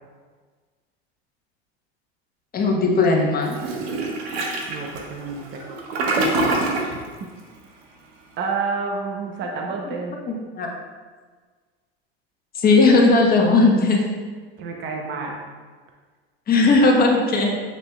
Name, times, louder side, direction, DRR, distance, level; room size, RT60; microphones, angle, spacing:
voice 1, 2.5-3.6 10.3-10.7 12.5-14.0 16.5-17.5, left 3 dB, 30° left, 0 dB, 1.2 m, -17 dB
Toilet flush, 3.5-7.0, right 2 dB, 75° right, 1.3 m, -25 dB
voice 2, 4.7-5.6 6.9-7.0 8.4-10.2 14.6-15.4, right 4 dB, 35° right, 1 dB, 0.8 m, -29 dB
7.4 x 6.7 x 2.3 m, 1.5 s
hypercardioid pair, 105°, 32 cm